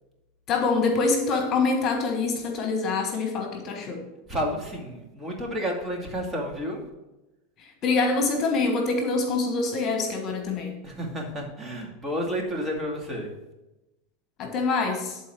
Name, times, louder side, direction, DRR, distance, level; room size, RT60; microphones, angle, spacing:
voice 1, 0.5-4.0 7.8-10.8 14.4-15.2, left 3 dB, 40° left, 4 dB, 1.4 m, -25 dB
voice 2, 4.3-6.8 10.8-13.3, equal, 20° right, 0 dB, 2.3 m, -31 dB
11.0 x 4.1 x 6.1 m, 0.98 s
supercardioid pair, 120°, 0 cm